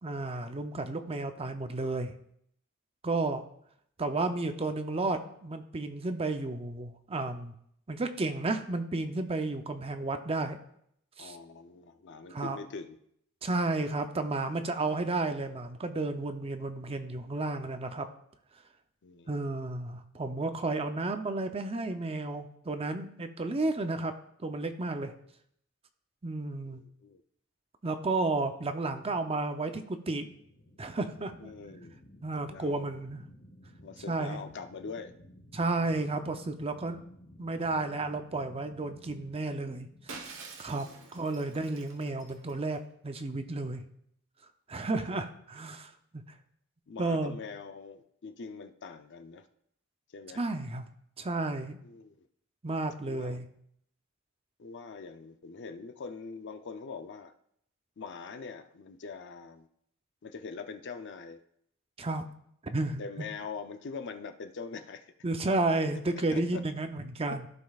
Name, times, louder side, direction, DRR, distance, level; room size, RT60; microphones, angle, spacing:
voice 1, 0.0-2.1 3.0-3.4 4.0-7.5 7.9-10.6 11.2-11.4 12.3-12.6 13.4-18.1 19.3-24.1 24.4-25.1 26.2-26.8 27.8-30.3 30.8-31.5 32.2-33.2 34.1-34.4 35.5-37.0 37.4-40.3 40.6-43.8 44.7-46.2 47.0-47.4 50.3-50.8 51.2-51.8 52.6-53.5 62.0-62.2 62.7-63.0 65.2-67.5, right 2 dB, 25° right, 7 dB, 0.6 m, -32 dB
voice 2, 11.2-13.0 19.0-19.5 26.6-27.2 31.4-32.0 32.5-32.8 33.8-35.1 40.8-41.1 46.9-49.4 50.1-50.4 51.8-52.3 53.0-53.4 54.6-57.3 58.0-59.7 60.2-61.4 63.0-65.1 66.3-66.6, left 5 dB, 55° left, 9 dB, 0.5 m, -43 dB
sound 1, 30.2-41.1, left 1 dB, 85° left, 1.7 m, -54 dB
Shatter, 40.1-42.8, right 4 dB, 60° right, 1.1 m, -47 dB
15.0 x 5.3 x 2.4 m, 0.71 s
head